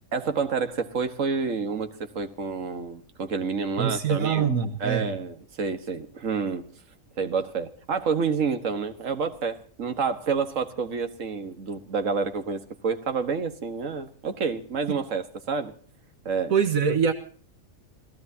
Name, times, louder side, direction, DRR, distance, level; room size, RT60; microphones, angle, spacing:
voice 1, 0.1-4.5 4.8-6.6 7.2-15.7 16.3-16.5, right 5 dB, 70° right, 7 dB, 1.9 m, -29 dB
voice 2, 3.8-5.1 16.5-17.1, right 7 dB, 85° right, 9 dB, 1.8 m, -23 dB
28.5 x 17.5 x 2.8 m, 0.43 s
omnidirectional pair, 1.4 m